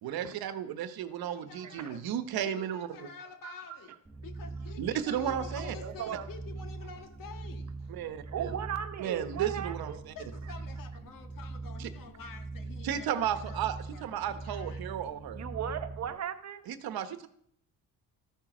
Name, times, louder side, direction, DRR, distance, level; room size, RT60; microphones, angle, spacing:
voice 1, 0.0-2.9 4.8-5.7 7.9-8.6 9.0-10.1 11.8-11.9 12.8-13.8 14.0-15.5 16.7-17.3, right 10 dB, 90° right, 10 dB, 1.2 m, -34 dB
voice 2, 1.3-4.0 4.2-7.9 10.1-14.9, left 6 dB, 65° left, 7 dB, 1.8 m, -49 dB
sound 1, 4.0-16.2, right 3 dB, 10° right, 2.1 m, -42 dB
voice 3, 5.8-6.3 8.3-10.0 15.4-16.6, right 9 dB, 50° right, 8 dB, 1.1 m, -37 dB
13.5 x 9.3 x 6.1 m, 0.67 s
cardioid pair, 150°, 35 cm